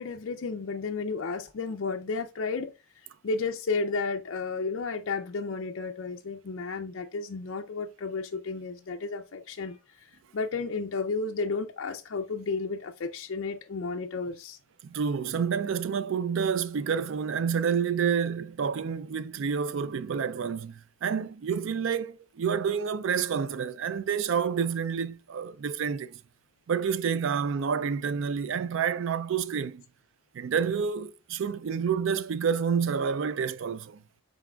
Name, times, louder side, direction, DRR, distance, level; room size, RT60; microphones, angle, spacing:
voice 1, 0.0-2.7 3.2-9.8 10.3-14.6, left 4 dB, 60° left, 0.4 m, -32 dB
voice 2, 14.8-26.2 26.7-29.8 30.3-34.0, right 6 dB, 60° right, 0.3 m, -29 dB
5.9 x 3.9 x 2.3 m
head